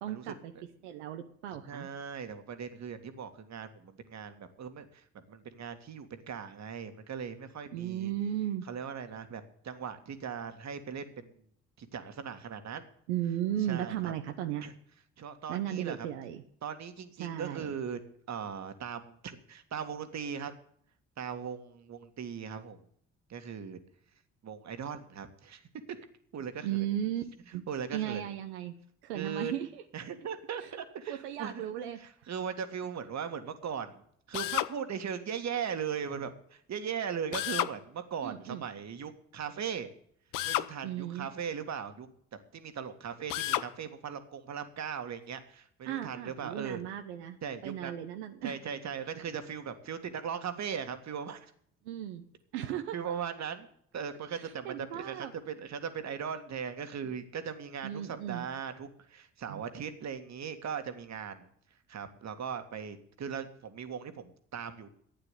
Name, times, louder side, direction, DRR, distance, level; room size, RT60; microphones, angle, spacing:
voice 1, 0.0-0.5 0.8-1.9 7.7-8.6 13.1-14.7 15.5-16.4 17.2-17.8 26.6-27.2 27.5-27.6 27.9-28.7 29.0-29.8 30.6-30.7 31.1-32.1 38.2-38.6 40.8-41.3 45.9-48.6 51.8-52.2 52.5-53.1 54.3-55.3 57.8-58.4 59.5-59.6, right 11 dB, 90° right, 6 dB, 0.9 m, -36 dB
voice 2, 1.7-8.1 8.7-11.4 11.8-12.9 13.7-14.1 14.6-14.7 15.2-16.1 16.6-18.0 18.3-20.5 21.2-22.8 23.3-23.8 24.4-26.1 26.3-26.9 27.7-28.2 29.1-29.5 29.9-31.6 32.0-34.0 34.3-39.9 40.4-42.1 42.5-46.8 47.4-48.0 48.4-51.5 52.9-53.7 53.9-61.5 61.9-64.9, right 7 dB, 55° right, 8 dB, 2.0 m, -39 dB
Drill, 34.3-34.7 37.3-37.8 40.3-40.7 43.3-43.7, left 15 dB, 70° left, 0.8 m, -31 dB
12.0 x 8.9 x 8.1 m, 0.66 s
hypercardioid pair, 60°, 33 cm